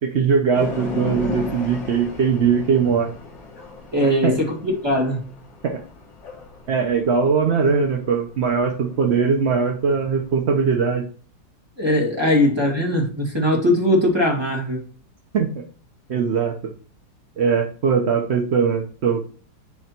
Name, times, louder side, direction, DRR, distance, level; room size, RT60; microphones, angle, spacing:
voice 1, 0.0-3.1 4.2-4.3 5.6-5.8 6.7-11.1 15.3-15.6 16.1-16.6 17.4-19.2, right 6 dB, 60° right, 3 dB, 0.7 m, -20 dB
sound 1, 0.5-10.4, left 3 dB, 80° left, 2.2 m, -36 dB
voice 2, 3.9-5.2 11.8-14.8, left 1 dB, 15° right, 0 dB, 1.9 m, -20 dB
9.8 x 3.4 x 4.3 m, 0.40 s
omnidirectional pair, 2.1 m